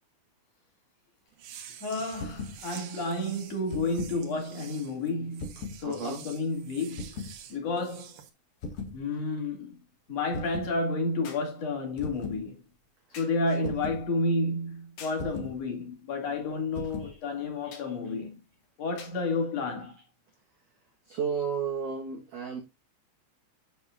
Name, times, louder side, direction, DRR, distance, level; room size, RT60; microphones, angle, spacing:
sound 1, 1.3-8.3, right 9 dB, 70° right, 2.5 m, -48 dB
voice 1, 1.8-7.1 7.5-8.1 8.9-9.8 10.1-12.6 13.2-18.4 18.8-20.0, left 2 dB, 40° left, 2.8 m, -31 dB
sound 2, 2.1-2.6 3.5-4.2 5.4-5.8 6.9-7.4 8.6-9.0 10.3-10.8 12.0-12.4 13.6-14.1 15.2-15.6 16.7-17.2, left 4 dB, 85° left, 1.3 m, -38 dB
voice 2, 5.8-6.2 13.1-13.2 13.6-13.7 17.0-17.2 17.6-17.9 21.1-22.6, right 6 dB, 90° right, 1.7 m, -33 dB
sound 3, 7.5-7.6 11.2-11.6 13.1-13.5 15.0-15.3 17.7-18.0 19.0-19.3 20.3-20.4, left 6 dB, 70° left, 4.2 m, -47 dB
9.2 x 7.1 x 2.5 m
omnidirectional pair, 5.9 m